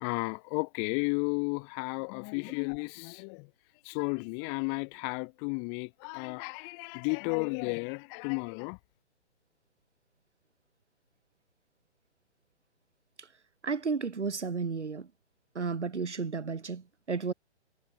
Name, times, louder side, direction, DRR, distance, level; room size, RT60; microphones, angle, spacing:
voice 1, 0.0-3.5 3.8-8.8, left 40 dB or more, 20° left, 1.2 m, -33 dB
voice 2, 13.6-15.1 15.5-17.3, right 5 dB, 85° right, 1.3 m, -33 dB
figure-of-eight pair, 135°, 34 cm